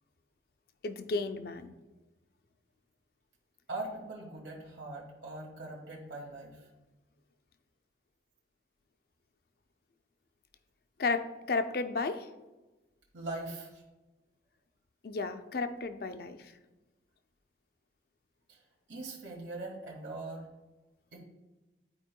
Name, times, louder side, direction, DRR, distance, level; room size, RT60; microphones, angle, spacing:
voice 1, 0.8-1.7 11.0-12.3 15.0-16.4, left 3 dB, 55° left, 8 dB, 0.5 m, -33 dB
voice 2, 3.7-6.7 13.1-13.8 18.5-18.6 18.9-20.5 21.1-21.2, right 2 dB, 85° right, -3 dB, 1.6 m, -41 dB
11.5 x 4.6 x 2.2 m, 1.1 s
head